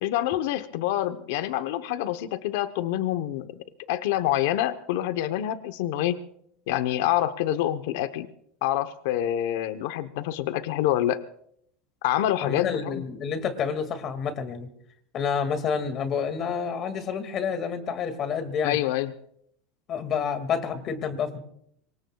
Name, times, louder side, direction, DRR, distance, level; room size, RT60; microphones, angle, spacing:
voice 1, 0.0-6.2 6.7-8.3 8.6-11.2 12.0-13.0 18.6-19.1, left 13 dB, 70° left, 10 dB, 0.9 m, -27 dB
voice 2, 12.4-14.7 15.1-18.8 19.9-21.4, left 6 dB, 35° left, 8 dB, 2.1 m, -29 dB
25.5 x 24.0 x 2.3 m, 0.70 s
supercardioid pair, 150°, 0 cm